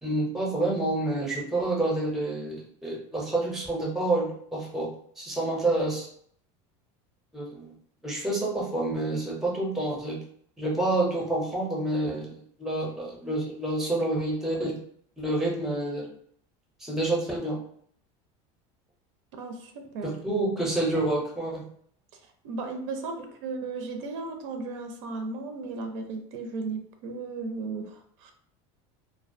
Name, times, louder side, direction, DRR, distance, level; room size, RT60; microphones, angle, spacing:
voice 1, 0.0-4.9 5.2-6.1 7.3-7.7 8.0-10.2 10.6-14.8 15.2-16.1 16.8-17.6 20.0-21.6, right 2 dB, ahead, -3 dB, 0.5 m, -28 dB
voice 2, 19.3-20.1 22.4-28.3, right 3 dB, 85° right, 4 dB, 0.5 m, -35 dB
2.2 x 2.2 x 2.5 m, 0.64 s
cardioid pair, 165°, 16 cm